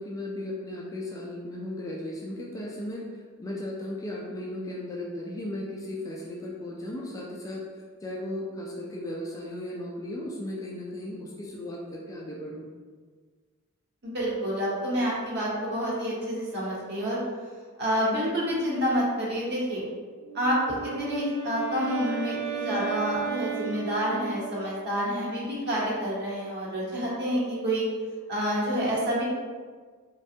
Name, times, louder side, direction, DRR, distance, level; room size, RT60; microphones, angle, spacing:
voice 1, 0.0-7.6 8.0-12.6, left 1 dB, 15° left, -4 dB, 0.3 m, -36 dB
voice 2, 14.0-17.2 17.8-19.8 20.3-27.8 28.3-29.2, equal, 50° right, -6 dB, 0.9 m, -28 dB
Wind instrument woodwind instrument, 20.2-24.7, right 10 dB, 85° right, 0.6 m, -35 dB
3.3 x 2.2 x 2.6 m, 1.5 s
head